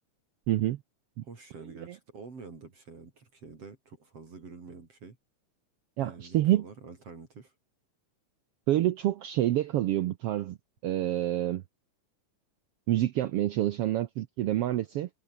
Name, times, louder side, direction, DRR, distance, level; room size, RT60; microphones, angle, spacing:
voice 1, 0.5-0.8 6.0-6.6 8.7-10.6 10.8-11.6 12.9-15.1, right 13 dB, 80° right, 1.3 m, -27 dB
voice 2, 1.2-5.2 6.0-7.5, right 4 dB, 50° right, 4.8 m, -47 dB
omnidirectional pair, 3.6 m